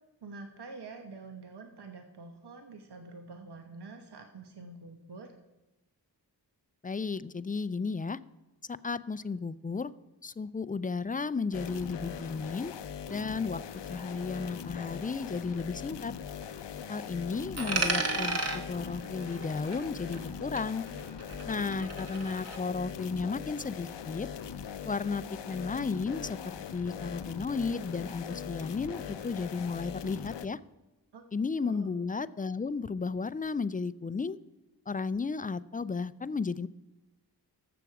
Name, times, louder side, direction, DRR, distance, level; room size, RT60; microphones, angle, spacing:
voice 1, 0.2-5.3 21.6-21.8 31.1-31.2 31.6-31.9, right 3 dB, 70° right, 5 dB, 1.1 m, -47 dB
voice 2, 6.8-8.2 8.7-9.9 10.2-12.7 13.1-13.6 13.9-16.1 16.9-18.4 18.7-20.9 21.5-24.3 24.9-30.6 31.3-34.4 34.9-36.7, left 4 dB, 20° left, 17 dB, 0.3 m, -34 dB
sound 1, 11.5-30.5, left 7 dB, 85° left, 0.7 m, -41 dB
Coin (dropping), 17.6-20.3 20.6-22.6, right 2 dB, 35° right, 1.6 m, -34 dB
14.0 x 7.0 x 4.8 m, 1.0 s
cardioid pair, 50°, 41 cm